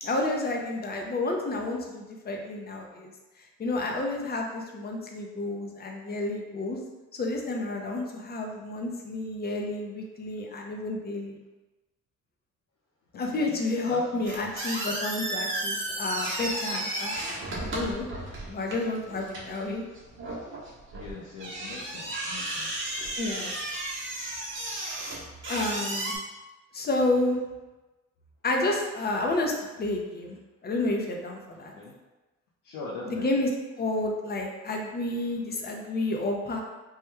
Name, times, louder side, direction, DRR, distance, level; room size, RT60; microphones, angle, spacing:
voice 1, 0.0-3.1 3.6-6.8 7.1-11.4 13.1-18.1 18.5-19.8 23.2-23.5 25.5-26.2 26.7-27.4 28.4-29.5 29.8-30.4 30.6-31.7 33.0-33.5 33.8-36.6, left 2 dB, 30° left, 1 dB, 0.6 m, -30 dB
voice 2, 13.9-14.3 20.9-22.8 31.7-31.9 32.6-33.2, left 3 dB, 85° left, -4 dB, 0.6 m, -41 dB
sound 1, 14.2-26.2, right 1 dB, 40° right, 0.9 m, -34 dB
3.0 x 2.2 x 3.3 m, 1.1 s
cardioid pair, 90°, 30 cm